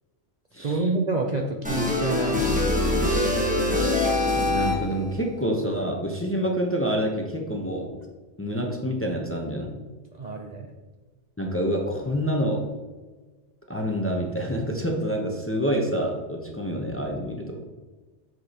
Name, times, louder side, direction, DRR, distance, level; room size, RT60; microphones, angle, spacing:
voice 1, 0.6-2.4 10.1-10.7, right 3 dB, 45° right, 1 dB, 0.7 m, -28 dB
sound 1, 1.6-5.1, left 2 dB, 5° right, 1.2 m, -23 dB
voice 2, 4.4-7.9 8.4-9.7 11.4-12.7 13.7-17.6, equal, 15° left, 1 dB, 0.8 m, -27 dB
8.2 x 6.1 x 2.9 m, 1.3 s
omnidirectional pair, 1.2 m